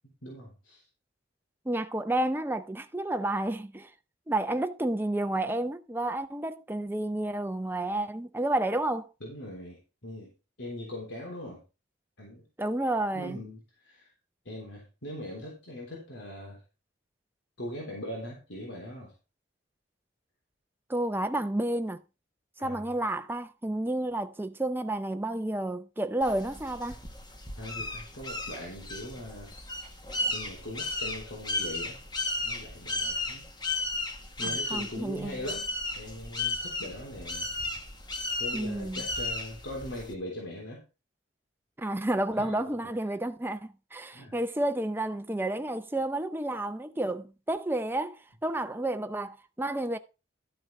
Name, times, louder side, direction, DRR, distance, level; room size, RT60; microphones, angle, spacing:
voice 1, 0.2-0.8 9.2-10.3 10.6-11.6 12.2-12.4 13.1-14.1 14.4-16.6 17.6-19.1 22.6-22.9 27.6-29.5 30.3-32.0 32.4-33.4 34.4-35.7 35.9-37.5 38.4-40.8 42.4-42.7 44.1-44.4, left 1 dB, 80° left, 3.3 m, -41 dB
voice 2, 1.6-3.9 4.3-9.1 12.6-13.4 20.9-22.0 22.6-27.0 34.4-35.4 38.5-39.0 41.8-50.0, right 1 dB, 10° right, 0.6 m, -31 dB
sound 1, 26.2-40.1, left 2 dB, 25° left, 1.4 m, -35 dB
12.0 x 6.3 x 4.5 m
head